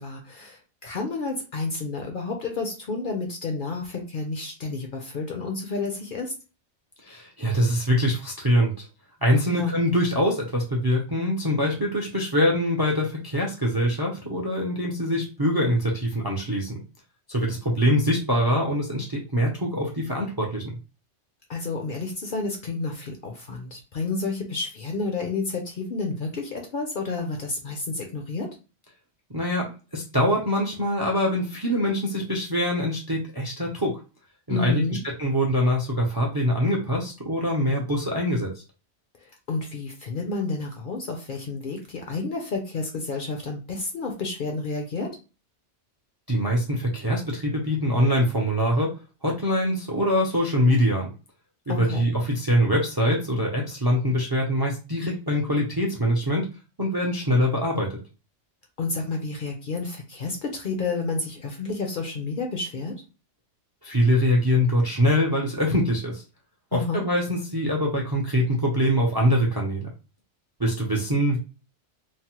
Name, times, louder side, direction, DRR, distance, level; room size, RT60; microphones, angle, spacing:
voice 1, 0.0-6.3 9.5-9.7 21.5-28.5 34.5-35.0 39.5-45.2 51.7-52.1 58.8-62.9 66.7-67.0, left 3 dB, 55° left, 2 dB, 0.6 m, -30 dB
voice 2, 7.1-8.9 9.2-16.8 17.3-20.6 29.3-34.0 34.5-34.8 35.2-38.5 46.3-48.9 49.2-51.1 51.7-56.4 56.8-58.0 63.8-66.2 66.7-69.9 70.6-71.4, equal, 30° right, -1 dB, 0.4 m, -24 dB
3.1 x 2.0 x 2.8 m, 0.32 s
omnidirectional pair, 1.2 m